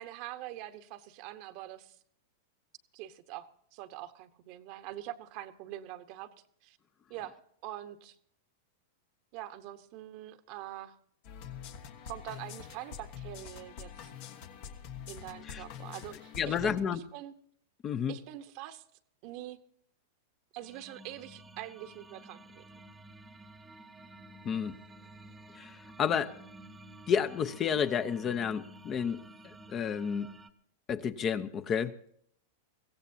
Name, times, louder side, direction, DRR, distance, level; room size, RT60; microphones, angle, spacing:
voice 1, 0.0-1.9 2.9-6.3 6.6-6.8 7.1-7.4 7.6-8.1 9.3-11.0 12.0-14.1 15.1-17.3 18.1-18.8 19.2-19.6 20.5-22.6, right 13 dB, 50° right, 10 dB, 1.1 m, -44 dB
sound 1, 11.2-16.8, left 8 dB, 55° left, 1.5 m, -45 dB
voice 2, 16.4-17.0 17.8-18.1 24.4-24.7 25.6-26.3 27.1-30.3 30.9-31.9, left 7 dB, 30° left, 11 dB, 0.8 m, -31 dB
sound 2, 20.6-30.5, right 1 dB, 15° right, 1.0 m, -52 dB
22.5 x 16.0 x 2.8 m, 0.67 s
hypercardioid pair, 110°, 0 cm